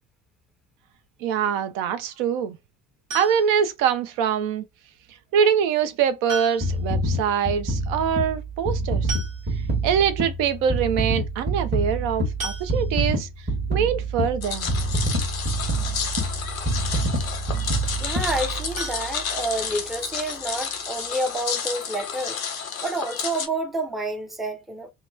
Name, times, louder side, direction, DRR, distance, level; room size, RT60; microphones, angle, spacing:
voice 1, 1.2-2.6 3.1-4.6 5.3-9.1 9.8-13.3 13.7-14.7, right 8 dB, 55° right, 0.5 m, -24 dB
sound 1, 3.1-3.7 5.2-5.3 6.3-6.9 7.2-7.3 7.6-7.7 8.7-8.8 9.1-9.8 10.4-10.5 10.8-11.0 12.4-13.2 18.7-19.9 20.3-20.4 20.8-20.9 21.3-21.4, right 2 dB, 80° right, 1.3 m, -36 dB
sound 2, 6.6-19.0 19.6-19.7, right 2 dB, 25° right, 1.1 m, -26 dB
sound 3, 14.4-23.5, left 6 dB, 90° left, 0.5 m, -31 dB
voice 2, 18.0-24.9, right 2 dB, ahead, 0.5 m, -29 dB
2.9 x 2.2 x 2.3 m
figure-of-eight pair, 60°, 41 cm